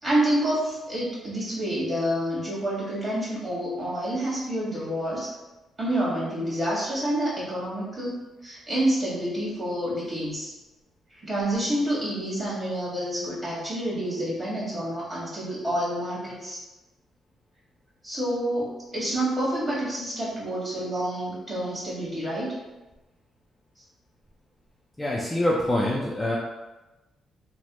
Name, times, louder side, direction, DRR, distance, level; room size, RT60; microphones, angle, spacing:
voice 1, 0.0-5.3 5.8-8.2 8.4-10.5 11.2-16.6 18.0-18.7 18.9-22.5, right 1 dB, 25° right, -7 dB, 1.5 m, -28 dB
voice 2, 25.0-26.4, left 1 dB, 10° left, -4 dB, 0.4 m, -25 dB
3.0 x 2.1 x 2.9 m, 1.1 s
cardioid pair, 90°, 0 cm